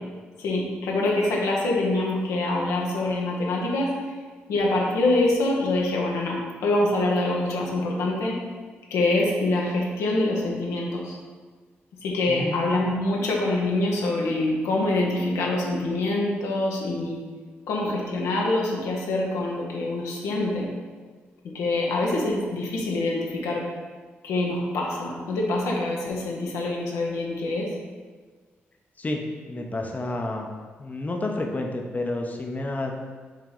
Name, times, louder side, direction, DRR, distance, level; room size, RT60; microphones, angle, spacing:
voice 1, 0.4-3.9 4.5-8.4 8.9-11.1 12.0-17.2 17.7-20.7 21.5-23.6 24.2-27.7, left 2 dB, 80° left, -2 dB, 0.7 m, -25 dB
voice 2, 12.3-12.9 29.0-30.5 30.8-32.9, left 2 dB, 30° left, 2 dB, 0.6 m, -30 dB
4.8 x 2.8 x 3.7 m, 1.5 s
supercardioid pair, 45°, 5 cm